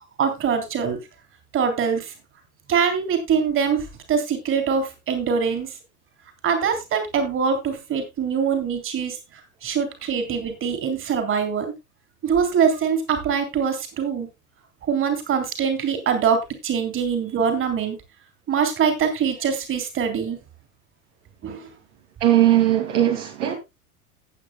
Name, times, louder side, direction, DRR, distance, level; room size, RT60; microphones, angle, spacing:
voice 1, 0.2-1.0 1.5-2.1 2.7-5.7 6.4-11.7 12.2-14.3 14.8-18.0 18.5-20.4 21.4-21.7, right 6 dB, 30° right, 3.5 m, -23 dB
voice 2, 22.2-23.6, right 12 dB, 55° right, 2.5 m, -18 dB
17.5 x 8.7 x 2.2 m
figure-of-eight pair, 85°, 43 cm